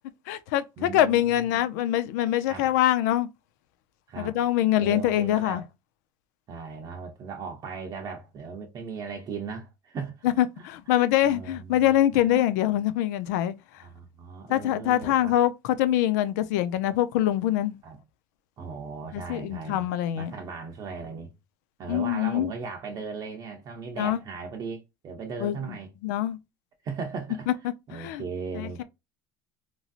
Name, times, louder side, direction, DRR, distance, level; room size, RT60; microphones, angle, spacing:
voice 1, 0.3-3.3 4.2-5.6 10.2-13.5 14.5-17.8 19.1-20.3 21.9-22.5 24.0-24.2 25.4-25.6 26.0-26.4 27.9-28.2 28.6-28.8, left 12 dB, 90° left, 0.4 m, -24 dB
voice 2, 0.8-1.6 2.5-2.7 4.1-4.4 4.8-5.6 6.5-10.9 11.2-12.4 13.8-15.3 17.8-18.0 18.6-19.9 20.2-21.3 21.8-25.9 26.8-27.5 27.9-28.8, right 5 dB, 40° right, 0.6 m, -37 dB
3.1 x 2.6 x 2.4 m
supercardioid pair, 125°, 9 cm